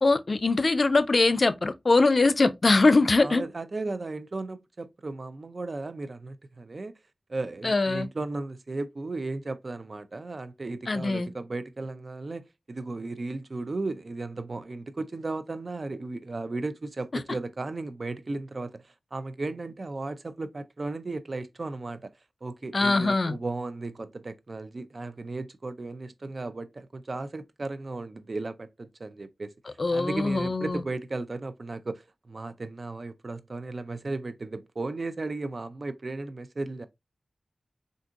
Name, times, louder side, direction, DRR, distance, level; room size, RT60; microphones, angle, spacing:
voice 1, 0.0-3.4 7.6-8.1 10.9-11.3 17.1-17.2 22.7-23.4 29.8-30.8, left 3 dB, 50° left, 0.3 m, -22 dB
voice 2, 3.2-6.9 7.3-22.1 22.4-29.5 29.9-36.9, right 3 dB, 55° right, 0.3 m, -35 dB
3.6 x 2.6 x 2.3 m
wide cardioid pair, 65°, 0 cm